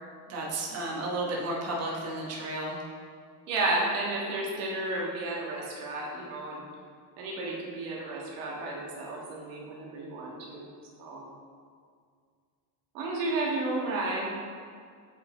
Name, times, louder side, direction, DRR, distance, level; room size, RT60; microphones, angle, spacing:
voice 1, 0.3-2.8, right 2 dB, 35° right, -3 dB, 1.1 m, -33 dB
voice 2, 3.5-6.6 7.2-10.6 11.0-11.3 12.9-14.3, right 2 dB, 85° right, -3 dB, 1.6 m, -32 dB
7.7 x 3.8 x 3.9 m, 2.1 s
cardioid pair, 115°, 46 cm